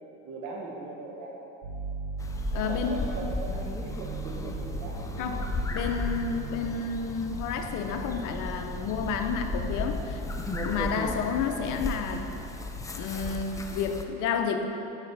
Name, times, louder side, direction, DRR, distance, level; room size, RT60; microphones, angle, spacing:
voice 1, 0.0-1.4 2.5-5.4, right 2 dB, 50° right, -2 dB, 1.2 m, -40 dB
sound 1, 1.6-6.6, right 3 dB, 75° right, 1.1 m, -39 dB
sound 2, 2.2-14.1, left 2 dB, 10° left, 0.3 m, -35 dB
voice 2, 2.5-3.0 5.2-10.2 10.6-12.3 12.9-14.7, left 6 dB, 55° left, 6 dB, 0.7 m, -30 dB
sound 3, 4.1-13.1, right 2 dB, 25° right, 1.0 m, -42 dB
8.1 x 4.9 x 3.4 m, 2.8 s
supercardioid pair, 90°, 37 cm